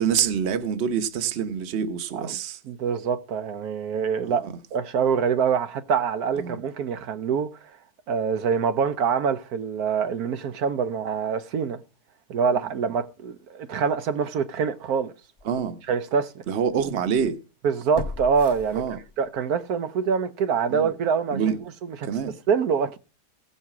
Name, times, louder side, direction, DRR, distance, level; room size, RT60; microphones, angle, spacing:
voice 1, 0.0-2.6 4.2-4.4 6.4-6.6 15.4-15.8 16.5-17.4 18.7-19.0 20.7-20.9 21.3-21.6 22.1-22.3, right 7 dB, 50° right, 1.1 m, -26 dB
voice 2, 2.6-7.7 8.1-11.8 12.3-15.1 15.9-16.4 17.6-18.8 19.2-21.6 21.8-22.0 22.5-23.0, right 6 dB, 75° right, 1.3 m, -25 dB
sound 1, 14.7-14.8 15.4-15.5 17.9-19.4 19.8-19.9, left 3 dB, 25° left, 0.5 m, -37 dB
16.0 x 5.7 x 5.9 m
omnidirectional pair, 1.6 m